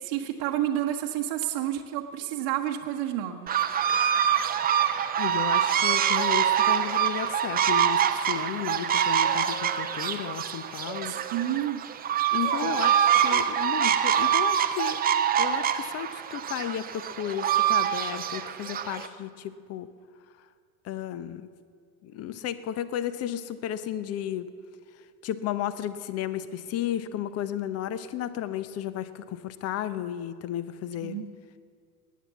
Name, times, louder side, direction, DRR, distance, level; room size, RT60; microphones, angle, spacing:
voice 1, 0.0-3.7 11.0-11.8 12.6-13.0 31.0-31.3, right 12 dB, 45° right, 2 dB, 1.2 m, -30 dB
sound 1, 3.5-19.1, right 9 dB, 20° right, 0.7 m, -25 dB
voice 2, 5.1-11.2 12.3-12.9 13.2-15.0 15.4-19.9 20.8-21.5 22.0-24.5 25.2-31.2, left 10 dB, 30° left, 14 dB, 0.9 m, -33 dB
19.5 x 9.5 x 7.1 m, 2.1 s
figure-of-eight pair, 85°, 47 cm